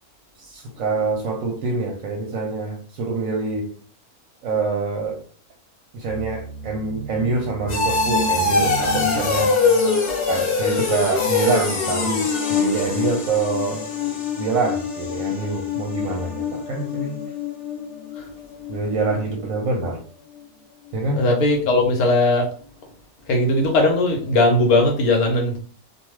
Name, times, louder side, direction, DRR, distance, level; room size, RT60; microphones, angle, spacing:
voice 1, 0.4-3.7 4.4-5.2 5.9-9.6 10.3-17.2 18.7-20.0 20.9-21.2, right 3 dB, 70° right, 2 dB, 0.9 m, -25 dB
sound 1, 6.1-18.8 19.1-19.5 19.9-20.0, left 4 dB, 55° left, 1.0 m, -24 dB
voice 2, 21.2-22.5 23.3-25.6, left 2 dB, 80° left, 1 dB, 1.1 m, -18 dB
2.4 x 2.2 x 3.0 m, 0.43 s
omnidirectional pair, 1.5 m